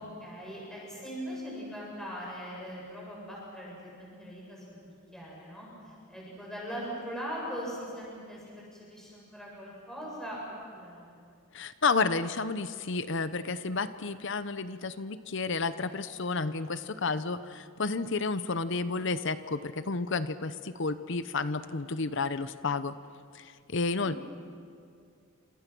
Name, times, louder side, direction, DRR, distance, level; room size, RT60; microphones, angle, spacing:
voice 1, 0.0-4.8 5.1-10.4 10.7-11.1, equal, 5° left, -5 dB, 7.6 m, -41 dB
voice 2, 11.5-22.9 23.3-24.2, left 4 dB, 60° left, 12 dB, 0.8 m, -31 dB
28.5 x 27.5 x 6.2 m, 2.3 s
head